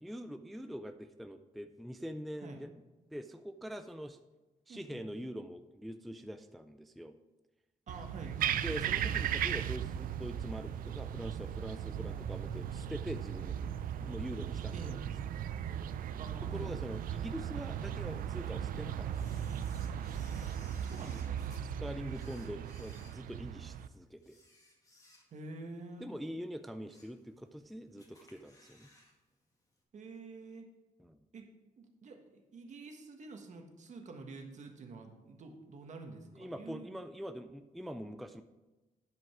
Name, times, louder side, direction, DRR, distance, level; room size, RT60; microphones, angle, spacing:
voice 1, 0.0-2.7 3.1-4.2 4.7-7.1 8.6-13.8 14.0-15.1 16.5-19.4 21.6-24.4 26.0-28.9 31.0-31.3 36.3-38.4, equal, ahead, 9 dB, 0.3 m, -44 dB
voice 2, 4.7-5.1 7.9-8.6 12.0-12.2 14.7-15.0 16.2-16.7 20.4-21.4 25.3-26.1 29.9-30.7 31.3-31.5 31.8-37.0, right 3 dB, 60° right, 4 dB, 1.3 m, -48 dB
squirrel chatter w city, 7.9-23.9, right 9 dB, 90° right, 0.4 m, -37 dB
Camera, 19.1-21.6 22.1-23.7 24.2-25.6 25.9-26.1 26.6-27.2 27.5-27.6 28.0-29.1 29.4-29.5, left 1 dB, 25° left, 1.9 m, -61 dB
11.0 x 5.2 x 4.8 m, 1.1 s
cardioid pair, 120°, 14 cm